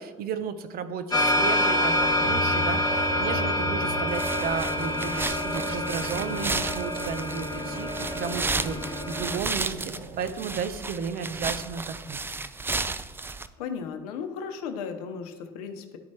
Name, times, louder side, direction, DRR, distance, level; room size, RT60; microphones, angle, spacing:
voice 1, 0.0-12.2, right 6 dB, 50° right, 11 dB, 0.7 m, -34 dB
sound 1, 1.1-9.4, left 1 dB, 20° left, 1.7 m, -27 dB
sound 2, 2.0-10.3, right 1 dB, 75° right, 1.1 m, -39 dB
sound 3, 4.1-13.5, right 3 dB, 10° right, 0.4 m, -33 dB
voice 2, 13.6-16.0, left 6 dB, 75° left, 7 dB, 0.8 m, -35 dB
11.5 x 4.4 x 2.9 m, 1.3 s
hypercardioid pair, 65°, 20 cm